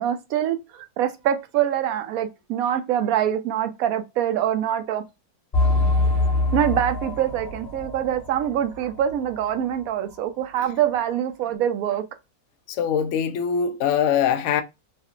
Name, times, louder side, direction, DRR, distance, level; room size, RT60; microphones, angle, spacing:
voice 1, 0.0-5.0 6.5-12.0, right 10 dB, 70° right, 0.9 m, -24 dB
sound 1, 5.5-9.8 10.1-10.2 10.8-10.9, left 2 dB, 25° left, 1.4 m, -25 dB
voice 2, 12.7-14.6, left 8 dB, 70° left, 0.7 m, -22 dB
3.3 x 2.4 x 2.7 m
omnidirectional pair, 1.7 m